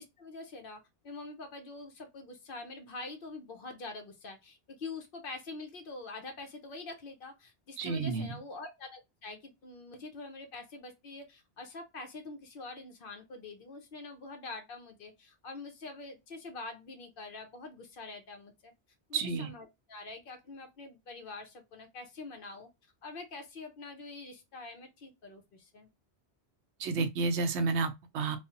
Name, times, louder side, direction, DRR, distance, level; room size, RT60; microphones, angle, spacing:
voice 1, 0.0-18.7 19.1-22.7 23.0-25.9, left 3 dB, 60° left, 0.8 m, -45 dB
voice 2, 7.8-8.4 19.1-19.5 26.8-28.4, right 4 dB, 85° right, 0.9 m, -31 dB
3.1 x 2.0 x 2.8 m
omnidirectional pair, 1.1 m